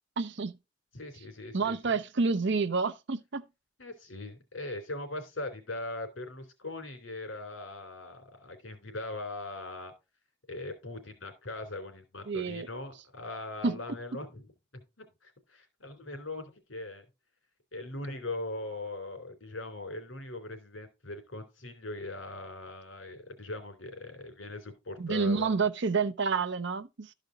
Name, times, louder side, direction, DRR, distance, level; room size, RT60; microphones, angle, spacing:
voice 1, 0.2-0.6 1.5-3.5 12.3-12.7 13.6-13.8 25.0-27.1, right 4 dB, 65° right, 0.7 m, -29 dB
voice 2, 0.9-1.8 3.8-9.9 10.5-14.5 14.7-17.0 17.7-25.7, left 2 dB, 75° left, 3.3 m, -40 dB
13.0 x 5.1 x 3.9 m
head